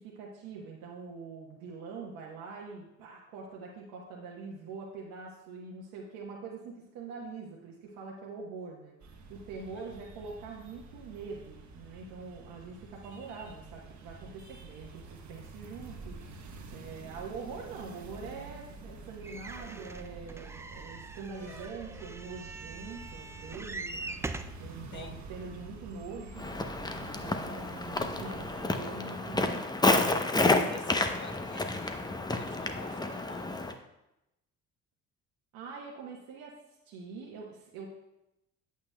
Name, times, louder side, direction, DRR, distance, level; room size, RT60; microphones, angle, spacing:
voice 1, 0.0-8.9 9.3-16.2 16.7-24.2 24.6-26.5 27.0-29.7 35.5-36.6 36.9-37.9, right 4 dB, 70° right, -2 dB, 1.2 m, -44 dB
sound 1, 9.0-28.7, right 3 dB, 50° right, 1.3 m, -48 dB
sound 2, 19.2-24.6 25.3-25.4 25.7-25.8, right 3 dB, 10° right, 0.3 m, -42 dB
Walk footsteps, 26.4-33.7, left 2 dB, 10° left, 0.7 m, -30 dB
voice 2, 30.7-33.6, left 4 dB, 30° left, 4 dB, 1.2 m, -47 dB
9.4 x 8.3 x 2.2 m, 0.90 s
hypercardioid pair, 60°, 37 cm